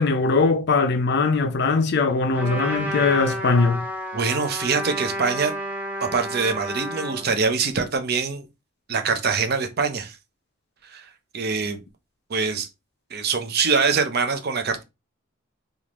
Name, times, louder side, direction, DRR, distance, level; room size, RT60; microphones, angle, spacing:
voice 1, 0.0-3.9, left 4 dB, 55° left, 0.5 m, -21 dB
Trumpet, 2.3-7.3, equal, 10° right, 0.8 m, -31 dB
voice 2, 4.1-5.5 6.0-8.4 8.9-10.2 10.8-11.0 11.3-11.8 12.3-12.7 13.1-14.8, right 5 dB, 50° right, 0.6 m, -24 dB
3.5 x 2.5 x 3.0 m
head